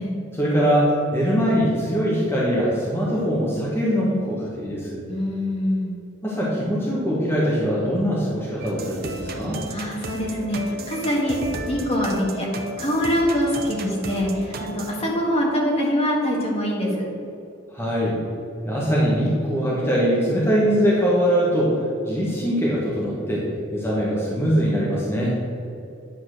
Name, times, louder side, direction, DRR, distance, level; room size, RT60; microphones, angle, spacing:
voice 1, 0.3-5.0 6.2-9.6 17.7-18.2 18.6-23.4 23.7-25.3, equal, 10° left, -6 dB, 1.4 m, -22 dB
voice 2, 5.1-5.9 9.7-11.4 11.6-12.5 12.8-17.1, equal, 30° left, -3 dB, 1.9 m, -24 dB
sound 1, 8.6-14.9, right 2 dB, 50° right, 0.8 m, -34 dB
9.9 x 4.3 x 6.5 m, 2.7 s
head